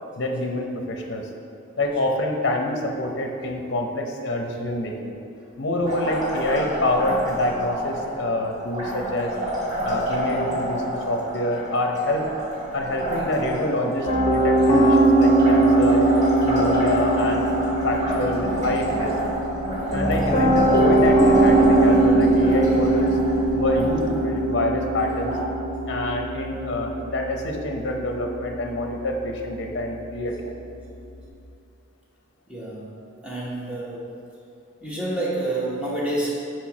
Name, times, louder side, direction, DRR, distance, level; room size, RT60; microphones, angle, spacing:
voice 1, 0.2-1.2 1.8-5.2 5.6-9.4 9.8-12.3 12.7-16.1 16.4-17.5 17.8-19.3 19.9-23.2 23.5-25.4 25.9-30.6, left 1 dB, 55° left, 2 dB, 0.6 m, -26 dB
Liquid, 5.9-25.4, equal, 35° right, 1.5 m, -28 dB
Piano, 14.1-31.2, right 2 dB, 25° left, 0.8 m, -22 dB
voice 2, 32.5-34.0 34.8-36.3, right 1 dB, 5° right, -6 dB, 1.0 m, -29 dB
4.5 x 4.5 x 5.8 m, 2.6 s
head